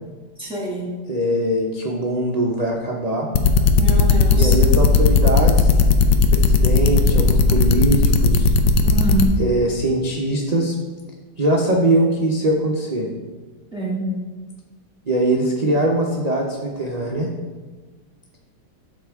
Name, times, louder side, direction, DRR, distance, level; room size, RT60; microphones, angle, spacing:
voice 1, 0.4-0.9 3.8-4.6 8.8-9.3 13.7-14.1, right 1 dB, 5° right, -5 dB, 1.8 m, -25 dB
voice 2, 1.1-3.3 4.4-5.7 6.3-8.5 9.4-10.7 11.4-13.1 15.1-17.3, right 1 dB, 70° right, -1 dB, 0.3 m, -21 dB
sound 1, 3.3-9.3, left 5 dB, 80° left, 1.3 m, -15 dB
12.5 x 4.2 x 3.5 m, 1.3 s
omnidirectional pair, 2.0 m